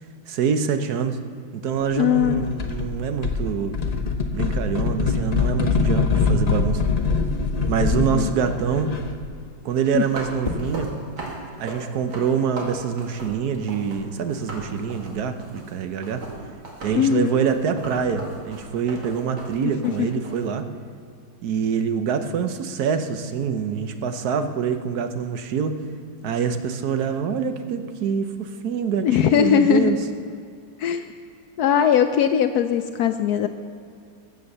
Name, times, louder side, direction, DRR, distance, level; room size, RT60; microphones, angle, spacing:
voice 1, 0.3-1.2 1.6-3.7 4.3-6.8 7.7-8.9 9.6-10.9 11.6-16.2 16.8-20.6 21.4-25.7 26.2-30.0, right 7 dB, 60° right, 8 dB, 1.2 m, -25 dB
voice 2, 2.0-2.4 8.1-8.3 9.9-10.0 16.9-17.3 19.8-19.9 29.0-29.9 30.8-31.1 31.6-33.5, left 8 dB, 80° left, 8 dB, 0.8 m, -19 dB
sound 1, 2.2-2.9 3.2-9.3, left 4 dB, 60° left, 0.4 m, -23 dB
sound 2, 10.0-14.0 14.3-20.5, right 1 dB, 80° right, 3.0 m, -38 dB
sound 3, 10.4-11.0 12.9-13.2, left 2 dB, 20° left, 1.1 m, -33 dB
14.5 x 8.0 x 6.7 m, 2.3 s
omnidirectional pair, 2.2 m